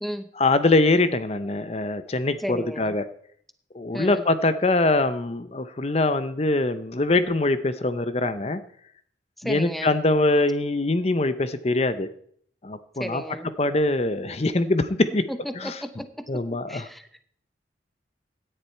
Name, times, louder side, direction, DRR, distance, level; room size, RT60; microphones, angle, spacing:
voice 1, 0.4-3.1 3.7-8.6 9.4-12.1 12.6-13.2 13.6-15.3 15.6-15.8 16.3-16.9, left 2 dB, 35° left, 12 dB, 0.7 m, -23 dB
voice 2, 2.4-2.9 3.9-4.2 9.4-10.0 13.0-13.5 15.3-17.1, equal, ahead, 9 dB, 0.7 m, -34 dB
17.0 x 10.0 x 4.5 m, 0.62 s
head